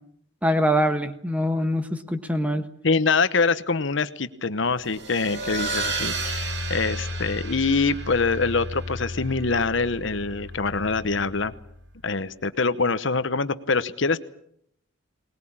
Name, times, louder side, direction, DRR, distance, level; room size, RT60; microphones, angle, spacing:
voice 1, 0.4-2.6, equal, 5° right, 9 dB, 1.3 m, -23 dB
voice 2, 2.8-11.5 12.0-14.2, left 4 dB, 65° left, 13 dB, 1.0 m, -24 dB
sound 1, 4.8-11.8, right 1 dB, 55° right, 2.3 m, -32 dB
21.5 x 20.5 x 8.8 m, 0.70 s
head